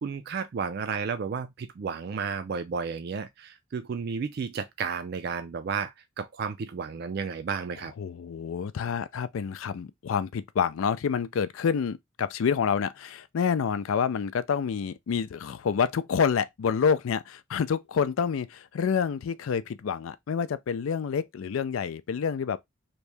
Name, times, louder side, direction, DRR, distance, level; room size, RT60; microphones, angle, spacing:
voice 1, 0.0-7.9, right 5 dB, 50° right, 0.3 m, -32 dB
voice 2, 8.0-22.6, left 6 dB, 80° left, 0.4 m, -28 dB
3.0 x 2.7 x 3.3 m
head